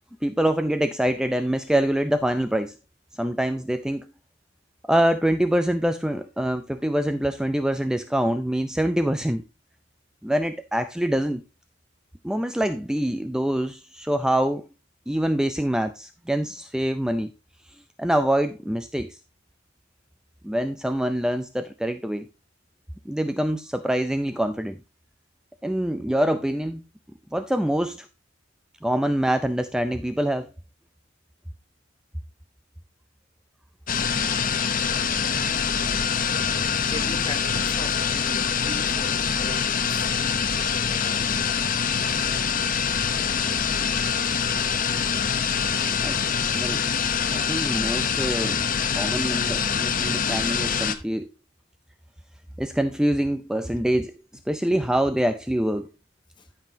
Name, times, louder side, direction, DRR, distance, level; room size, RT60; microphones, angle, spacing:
voice 1, 0.2-2.8 3.2-4.1 4.9-9.4 10.2-11.4 12.2-14.7 15.1-17.3 18.0-19.2 20.4-22.3 23.1-24.8 25.6-26.8 27.3-28.1 28.8-30.5 46.0-46.2 46.5-46.9 47.3-48.7 49.0-51.3 52.6-54.2 54.5-55.9, right 1 dB, 5° right, 0.4 m, -25 dB
sound 1, 33.9-50.9, left 6 dB, 45° left, 0.8 m, -25 dB
voice 2, 36.2-36.6 36.9-40.1 40.6-41.8 42.1-42.5 53.6-53.8 56.4-56.5, left 2 dB, 25° left, 1.1 m, -40 dB
14.0 x 5.5 x 2.7 m
head